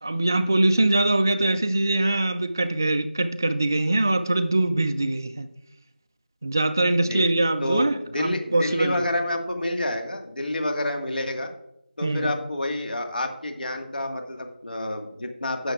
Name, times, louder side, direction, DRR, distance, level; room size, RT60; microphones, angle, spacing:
voice 1, 0.0-5.5 6.4-9.0 12.0-12.3, right 2 dB, 20° right, 10 dB, 0.3 m, -23 dB
voice 2, 7.6-11.5 12.0-15.7, left 1 dB, 60° left, 4 dB, 1.6 m, -28 dB
16.5 x 6.7 x 2.4 m, 0.82 s
figure-of-eight pair, 170°, 6 cm